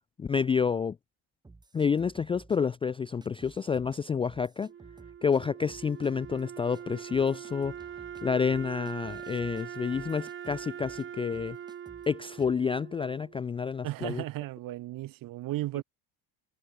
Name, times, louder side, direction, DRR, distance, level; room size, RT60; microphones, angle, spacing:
voice 1, 0.2-1.0 1.7-4.7 5.2-7.7 8.2-11.6 12.1-14.2, left 6 dB, 15° left, 0.4 m, -29 dB
sound 1, 1.4-2.6 3.2-4.0 4.3-5.4 5.7-6.4 6.7-6.8 7.1-11.1 11.3-12.1 12.4-12.6, right 3 dB, 10° right, 3.6 m, -54 dB
Wind instrument woodwind instrument, 4.6-13.7, right 9 dB, 30° right, 2.3 m, -43 dB
voice 2, 13.8-15.8, right 16 dB, 50° right, 2.4 m, -35 dB
cardioid pair, 175°, 42 cm